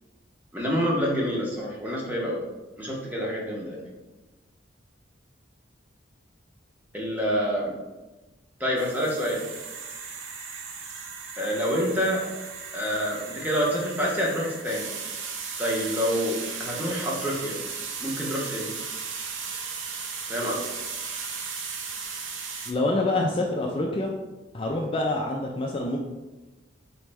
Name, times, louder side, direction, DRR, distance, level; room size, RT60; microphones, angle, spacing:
voice 1, 0.5-2.4 2.8-3.8 6.9-7.7 8.6-9.5 11.4-12.2 12.7-14.9 15.6-17.5 18.0-18.7 20.3-20.5, equal, 10° right, -4 dB, 0.8 m, -27 dB
sound 1, 8.8-22.7, right 5 dB, 90° right, 0.6 m, -36 dB
voice 2, 22.7-24.1 24.5-26.0, left 2 dB, 30° left, 0 dB, 0.3 m, -26 dB
4.1 x 3.1 x 3.4 m, 1.1 s
head